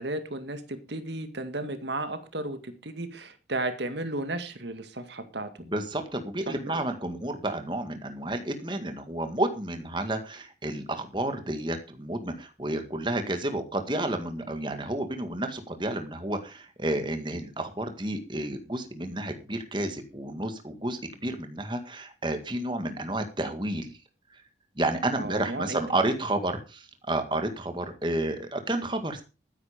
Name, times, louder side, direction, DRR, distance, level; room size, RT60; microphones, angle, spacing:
voice 1, 0.0-5.5 6.5-6.8 25.2-25.8, right 2 dB, 80° right, 9 dB, 2.1 m, -34 dB
voice 2, 5.7-24.0 24.3-24.4 24.7-29.2, right 1 dB, 25° right, 7 dB, 1.8 m, -31 dB
13.5 x 10.0 x 5.1 m, 0.32 s
head